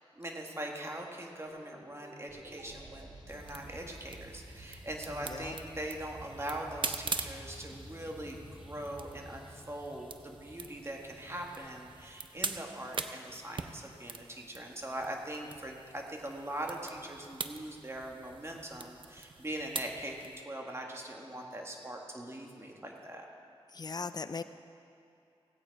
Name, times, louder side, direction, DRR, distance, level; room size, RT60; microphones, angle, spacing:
voice 1, 0.2-23.3, right 1 dB, 25° right, 0 dB, 1.8 m, -41 dB
sound 1, 1.5-10.8, right 1 dB, 85° right, 2.1 m, -52 dB
sound 2, 2.3-12.1, equal, 5° right, 2.2 m, -58 dB
sound 3, 3.3-20.4, right 4 dB, 55° right, 0.6 m, -44 dB
voice 2, 5.1-5.5 23.7-24.4, left 4 dB, 40° left, 12 dB, 0.5 m, -39 dB
16.5 x 8.7 x 4.8 m, 2.6 s
wide cardioid pair, 70°, 10 cm